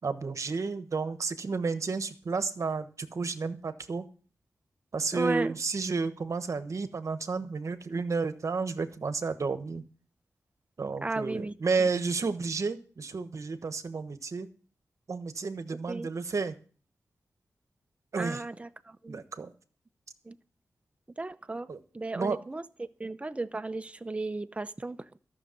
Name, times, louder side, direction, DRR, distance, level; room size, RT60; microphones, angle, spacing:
voice 1, 0.0-4.1 4.9-9.8 10.8-14.5 15.1-16.6 18.1-18.4 19.1-19.5 21.7-21.8 22.1-22.4, right 4 dB, 55° right, 1.2 m, -31 dB
voice 2, 5.1-5.5 11.0-11.5 15.9-16.1 18.2-19.2 20.3-20.4 21.2-21.7 21.9-25.0, right 2 dB, 20° right, 0.7 m, -34 dB
13.0 x 6.5 x 7.6 m
cardioid pair, 75°, 6 cm